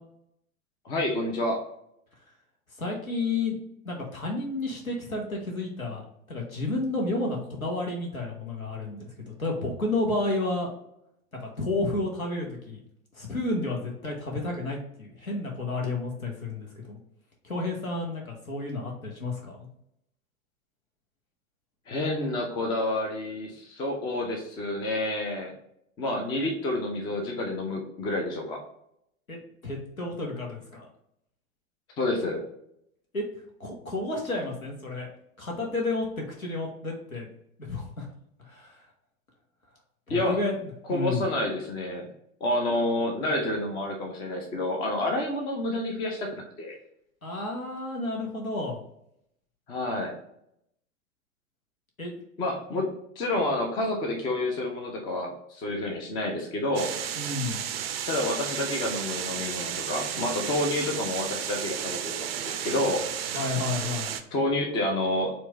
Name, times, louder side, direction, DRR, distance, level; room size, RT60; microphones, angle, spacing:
voice 1, 0.8-1.6 21.9-25.5 26.0-28.6 32.0-32.4 40.1-40.4 40.9-42.1 42.4-46.8 49.7-50.2 52.4-52.9 53.2-56.9 58.1-63.0 64.3-65.3, left 1 dB, 10° left, 2 dB, 0.4 m, -29 dB
voice 2, 2.8-3.6 3.8-6.0 6.3-9.1 9.4-10.7 11.4-12.8 13.1-17.0 17.4-19.7 29.3-30.9 33.1-33.2 33.6-35.1 35.4-37.3 37.6-38.1 38.4-38.8 40.1-41.2 47.2-48.8 52.0-52.2 57.2-57.6 63.3-64.2, left 2 dB, 85° left, -1 dB, 1.1 m, -31 dB
sound 1, 56.7-64.2, right 9 dB, 45° right, 0.5 m, -33 dB
4.4 x 2.5 x 2.9 m, 0.76 s
figure-of-eight pair, 95°, 41 cm